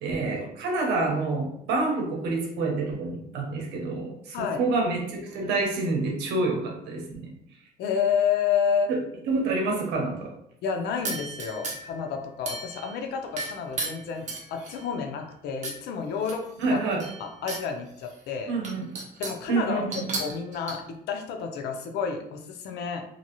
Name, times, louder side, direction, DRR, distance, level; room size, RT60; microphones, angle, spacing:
voice 1, 0.0-7.3 8.9-9.0 9.3-10.3 16.6-17.1 18.5-18.8 19.5-20.1, right 3 dB, 85° right, 0 dB, 0.8 m, -27 dB
voice 2, 7.8-8.9 10.6-16.8 17.2-18.5 19.2-19.9 20.2-23.0, left 6 dB, 75° left, 4 dB, 0.5 m, -30 dB
sound 1, 11.0-12.0 12.5-13.0 13.4-14.9 15.6-15.8 16.2-17.6 18.0-18.1 18.6-19.5 19.9-20.7, right 3 dB, 45° right, 0.9 m, -34 dB
2.8 x 2.6 x 2.8 m, 0.73 s
cardioid pair, 110°, 17 cm